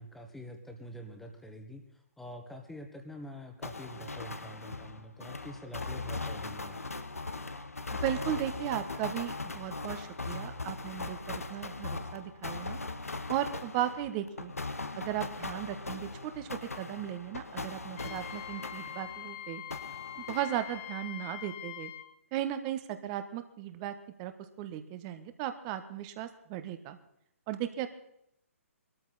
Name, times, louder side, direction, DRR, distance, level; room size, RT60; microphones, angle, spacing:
voice 1, 0.0-1.8 2.2-6.8, equal, 5° left, 4 dB, 1.7 m, -46 dB
sound 1, 3.6-19.4 19.7-21.1, left 3 dB, 80° left, 1.2 m, -40 dB
voice 2, 7.9-12.8 13.3-14.5 15.0-19.6 20.2-21.9 22.3-24.3 24.6-27.0 27.5-27.9, right 12 dB, 25° right, 10 dB, 1.4 m, -36 dB
Wind instrument woodwind instrument, 18.0-22.1, left 13 dB, 30° left, 1.3 m, -43 dB
22.0 x 13.5 x 4.2 m, 0.76 s
figure-of-eight pair, 130°, 8 cm